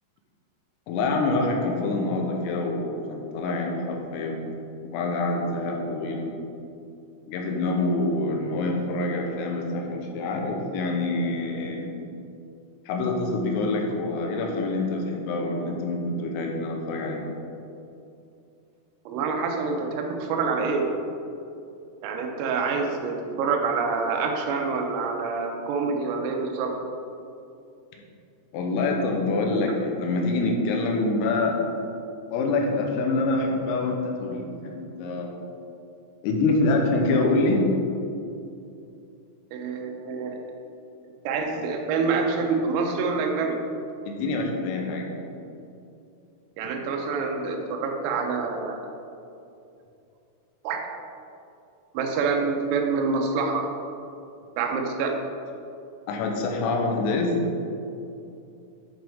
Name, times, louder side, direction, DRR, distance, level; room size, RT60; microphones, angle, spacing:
voice 1, 0.9-4.4 4.9-6.3 7.3-11.9 12.9-17.3 28.5-31.6 32.3-35.3 36.2-37.6 44.1-45.1 56.1-57.4, left 2 dB, 85° left, 1 dB, 3.6 m, -26 dB
voice 2, 19.1-20.9 22.0-26.7 39.5-40.4 41.3-43.6 46.6-48.8 50.7-50.8 52.0-53.6 54.6-55.1, right 4 dB, 85° right, 2 dB, 3.5 m, -26 dB
10.5 x 5.2 x 3.5 m, 2.6 s
omnidirectional pair, 5.8 m